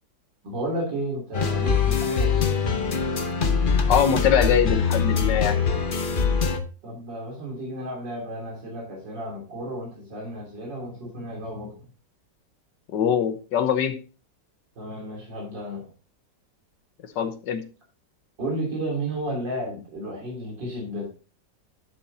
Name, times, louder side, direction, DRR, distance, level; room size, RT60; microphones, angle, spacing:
voice 1, 0.4-2.6 6.8-11.8 14.8-15.9 18.4-21.1, right 1 dB, 80° right, -2 dB, 3.8 m, -32 dB
sound 1, 1.3-6.6, left 5 dB, 40° left, 0.8 m, -23 dB
voice 2, 3.9-5.6 12.9-14.0 17.1-17.6, left 8 dB, 75° left, 9 dB, 1.7 m, -22 dB
10.5 x 7.2 x 2.7 m, 0.34 s
omnidirectional pair, 1.9 m